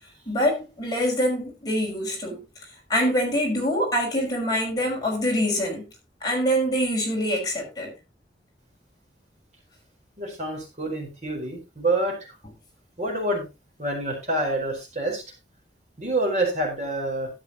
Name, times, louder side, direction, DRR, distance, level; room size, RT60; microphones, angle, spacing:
voice 1, 0.3-2.4 2.9-5.9 6.2-7.9, equal, 25° left, 5.6 m, -25 dB
voice 2, 10.2-12.2 13.0-13.5 13.8-15.2 16.0-17.3, right 2 dB, 40° right, 4.6 m, -27 dB
13.0 x 10.5 x 3.0 m
head